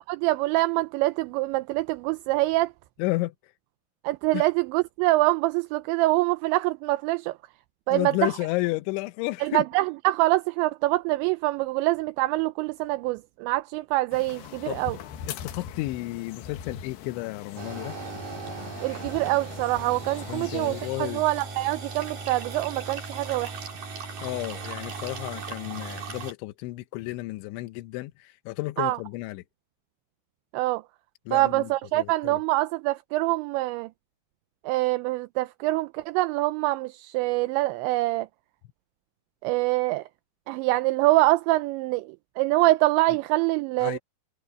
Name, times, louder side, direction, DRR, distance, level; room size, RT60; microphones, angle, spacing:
voice 1, 0.1-2.7 4.0-7.3 7.9-8.3 9.4-15.0 18.8-23.5 28.8-29.0 30.5-30.8 31.3-33.9 34.7-38.3 39.4-40.0 40.5-44.0, right 19 dB, 85° right, 2.8 m, -25 dB
voice 2, 3.0-3.5 4.3-4.5 7.9-9.6 14.7-14.8 15.3-18.0 20.3-21.2 24.2-29.4 31.3-31.7 32.0-32.4 43.8-44.0, left 20 dB, 85° left, 3.1 m, -32 dB
sound 1, 14.1-20.9, left 9 dB, 70° left, 3.2 m, -41 dB
sound 2, 17.6-26.3, right 4 dB, 50° right, 5.7 m, -38 dB
omnidirectional pair, 5.4 m